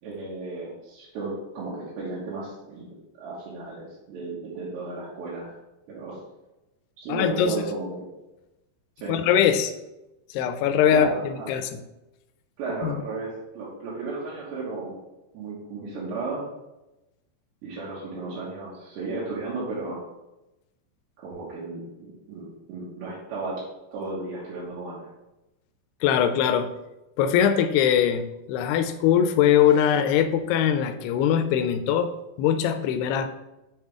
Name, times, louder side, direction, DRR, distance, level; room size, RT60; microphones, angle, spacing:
voice 1, 0.0-5.6 5.9-6.2 7.0-8.1 9.0-9.2 10.9-11.5 12.6-14.9 15.3-16.5 17.6-20.1 21.2-23.6 23.9-25.0, right 3 dB, 80° right, -7 dB, 3.6 m, -34 dB
voice 2, 7.1-7.6 9.1-9.7 10.3-11.7 12.8-13.0 26.0-26.7 27.2-32.1 32.4-33.3, left 9 dB, 80° left, 8 dB, 2.4 m, -22 dB
7.3 x 5.5 x 3.5 m, 0.97 s
omnidirectional pair, 4.9 m